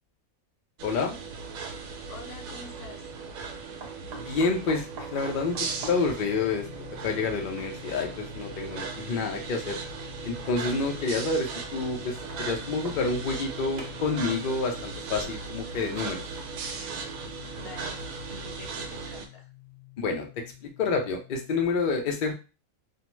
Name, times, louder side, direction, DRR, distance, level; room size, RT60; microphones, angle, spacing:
voice 1, 0.8-1.2 4.1-6.7 7.0-9.8 10.2-16.2 20.0-22.3, left 4 dB, 60° left, 3 dB, 0.5 m, -29 dB
sound 1, 0.8-19.3, right 4 dB, 75° right, 1.0 m, -38 dB
sound 2, 1.4-1.5 3.8-8.1 9.0-9.1 10.3-10.4 12.1-13.5 13.8-14.3 16.1-17.5 18.0-18.1 18.5-18.6, right 4 dB, 60° right, 0.4 m, -46 dB
voice 2, 2.1-3.1 17.5-19.5, left 3 dB, 85° left, 2 dB, 1.2 m, -46 dB
sound 3, 5.2-21.7, left 19 dB, 25° right, 0.9 m, -49 dB
2.7 x 2.1 x 3.0 m, 0.32 s
omnidirectional pair, 1.5 m